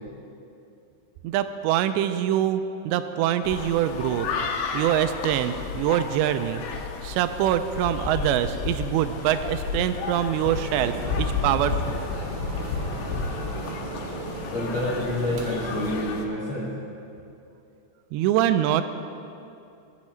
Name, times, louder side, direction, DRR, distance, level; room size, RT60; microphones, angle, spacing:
voice 1, 1.2-4.3 4.7-6.6 7.0-12.0 18.1-18.8, right 11 dB, 85° right, 10 dB, 2.7 m, -24 dB
sound 1, 3.4-16.3, left 5 dB, 85° left, 3.1 m, -32 dB
sound 2, 10.5-16.0, right 3 dB, 65° right, 3.1 m, -36 dB
voice 2, 14.5-16.7, left 1 dB, 60° left, -7 dB, 1.3 m, -28 dB
21.0 x 7.3 x 4.4 m, 2.6 s
omnidirectional pair, 5.0 m